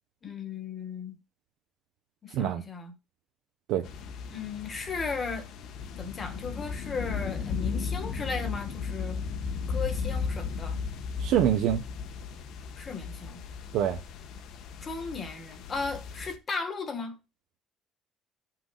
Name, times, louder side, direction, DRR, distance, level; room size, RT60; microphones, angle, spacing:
voice 1, 0.2-1.2 2.2-2.9 4.3-5.5 6.0-9.2 9.7-10.8 12.7-13.4 14.8-17.1, left 4 dB, 25° left, 1.4 m, -36 dB
sound 1, 3.8-16.4, left 5 dB, 60° left, 1.1 m, -35 dB
voice 2, 11.2-11.8 13.7-14.0, right 10 dB, 70° right, 0.9 m, -25 dB
16.0 x 6.0 x 2.4 m
cardioid pair, 175°, 0 cm